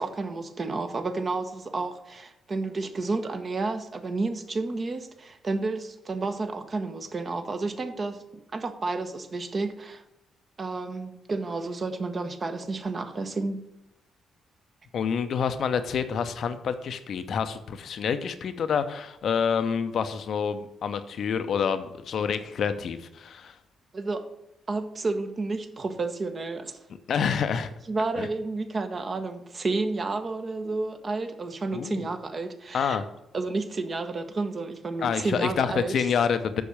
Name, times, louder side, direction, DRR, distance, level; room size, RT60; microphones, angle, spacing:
voice 1, 0.0-8.2 8.5-10.0 10.6-13.6 23.9-24.2 24.7-26.8 27.9-33.0 33.3-35.9, right 3 dB, 40° right, 7 dB, 1.1 m, -31 dB
voice 2, 14.9-23.5 27.1-27.7 28.2-28.3 31.7-32.1 32.7-33.0 35.0-36.6, left 7 dB, 55° left, 10 dB, 0.6 m, -27 dB
7.2 x 6.3 x 7.2 m, 0.89 s
figure-of-eight pair, 40°, 0 cm